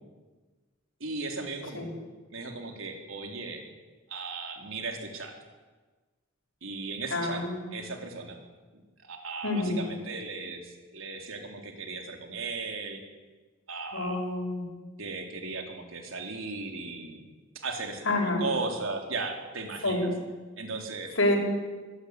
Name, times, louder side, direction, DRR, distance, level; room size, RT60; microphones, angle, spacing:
voice 1, 1.0-1.9 2.3-3.6 4.1-5.3 6.6-7.4 7.7-8.4 9.0-13.0 13.7-14.2 15.0-17.2 17.5-20.1 20.6-21.1, right 3 dB, 75° right, 3 dB, 4.0 m, -36 dB
voice 2, 7.1-7.8 9.4-9.8 13.9-14.7 18.1-18.5 19.8-20.1 21.2-21.4, left 2 dB, 75° left, 0 dB, 6.2 m, -28 dB
23.5 x 17.0 x 9.8 m, 1.3 s
head